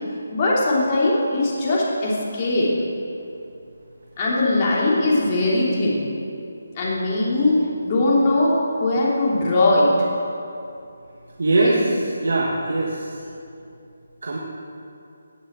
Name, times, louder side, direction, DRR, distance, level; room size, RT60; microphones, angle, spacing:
voice 1, 0.3-2.7 4.2-6.1 6.7-7.5 7.8-9.9 11.5-11.8, left 2 dB, 30° left, -5 dB, 3.0 m, -20 dB
voice 2, 11.4-13.1 14.2-14.4, right 2 dB, 70° right, -1 dB, 1.6 m, -22 dB
17.5 x 6.6 x 7.4 m, 2.6 s
figure-of-eight pair, 160°, 0 cm